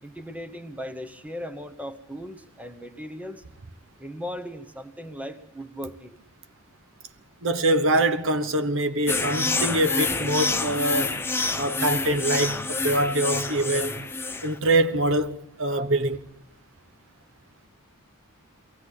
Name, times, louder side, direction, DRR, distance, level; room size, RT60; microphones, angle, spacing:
voice 1, 0.0-3.4 4.0-6.2, equal, 5° right, 1.1 m, -38 dB
voice 2, 7.4-11.2 11.6-14.1 14.4-16.2, right 1 dB, 60° right, 1.1 m, -24 dB
sound 1, 9.1-14.6, left 3 dB, 10° left, 0.8 m, -27 dB
23.0 x 16.5 x 8.3 m
head